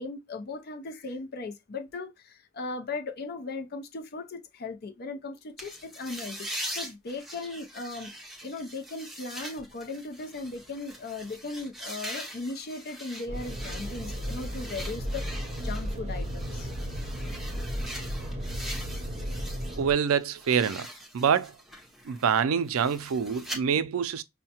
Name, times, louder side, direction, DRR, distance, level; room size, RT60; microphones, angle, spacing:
voice 1, 0.0-8.1 8.4-16.7, left 3 dB, 50° left, 0.5 m, -38 dB
sound 1, 5.6-19.8 20.1-23.6, equal, ahead, 0.7 m, -42 dB
sound 2, 13.3-19.9, equal, 30° right, 0.7 m, -34 dB
voice 2, 19.8-20.9 21.1-21.6 22.1-24.2, right 7 dB, 85° right, 0.4 m, -26 dB
5.4 x 2.1 x 2.8 m
head